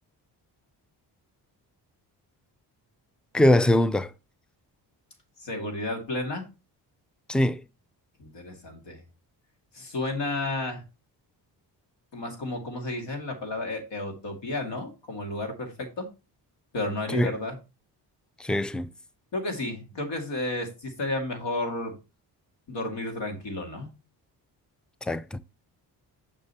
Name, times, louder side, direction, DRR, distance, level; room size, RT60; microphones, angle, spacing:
voice 1, 3.3-4.1 7.3-7.6 17.1-17.3 18.4-18.9 25.0-25.4, left 1 dB, ahead, 0.4 m, -22 dB
voice 2, 5.4-6.5 8.2-9.0 9.7-10.8 12.1-16.1 16.7-17.6 19.3-21.9 22.7-23.9, left 2 dB, 65° left, 2.2 m, -32 dB
6.6 x 6.5 x 2.8 m
supercardioid pair, 55°, 46 cm